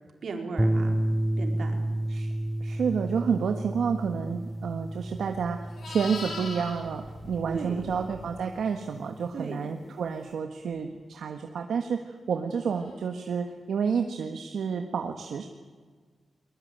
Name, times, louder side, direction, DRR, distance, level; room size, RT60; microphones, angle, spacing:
voice 1, 0.2-1.0 1.4-1.8 7.4-7.9 9.3-9.6, right 4 dB, 65° right, 3 dB, 4.5 m, -35 dB
sound 1, 0.6-9.0, right 1 dB, 10° right, 0.8 m, -31 dB
voice 2, 2.6-15.5, right 6 dB, 85° right, 5 dB, 1.5 m, -30 dB
Livestock farm animals working animals, 5.1-8.4 12.7-13.0, left 3 dB, 70° left, 6.1 m, -41 dB
22.0 x 21.0 x 9.2 m, 1.5 s
wide cardioid pair, 105°, 0 cm